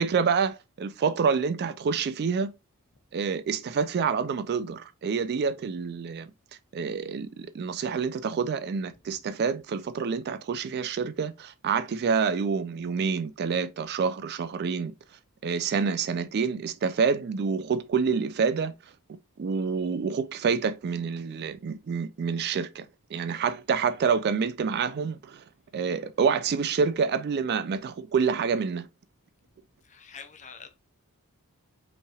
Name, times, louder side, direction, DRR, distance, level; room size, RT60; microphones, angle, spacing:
voice 1, 0.0-2.5 3.1-6.3 6.7-14.9 15.4-18.8 19.4-22.9 23.1-25.4 25.7-28.9, right 5 dB, 45° right, 0.3 m, -27 dB
voice 2, 29.8-30.8, left 6 dB, 35° left, 0.6 m, -47 dB
5.3 x 3.2 x 2.3 m
head